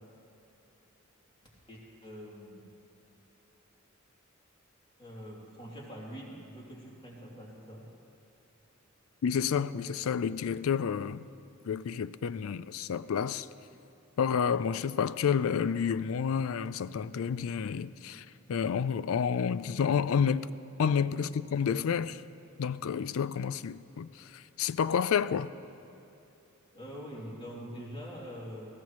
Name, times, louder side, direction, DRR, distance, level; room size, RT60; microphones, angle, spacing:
voice 1, 1.7-2.7 5.0-7.9 21.1-21.3 26.7-28.7, equal, 25° left, 3.0 m, -44 dB
voice 2, 9.2-11.3 11.7-13.5 14.2-20.5 20.8-22.2 22.6-25.5, left 7 dB, 70° left, 0.4 m, -30 dB
21.5 x 15.0 x 3.1 m
head